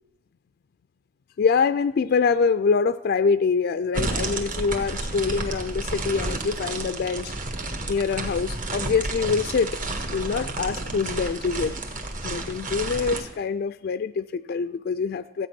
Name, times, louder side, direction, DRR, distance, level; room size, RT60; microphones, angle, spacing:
voice 1, 1.4-7.3 7.9-9.7 10.1-11.7 12.2-15.5, left 5 dB, 60° left, 12 dB, 0.3 m, -25 dB
sound 1, 3.9-13.2, right 2 dB, 45° right, 1.5 m, -31 dB
14.5 x 8.7 x 6.0 m, 0.93 s
head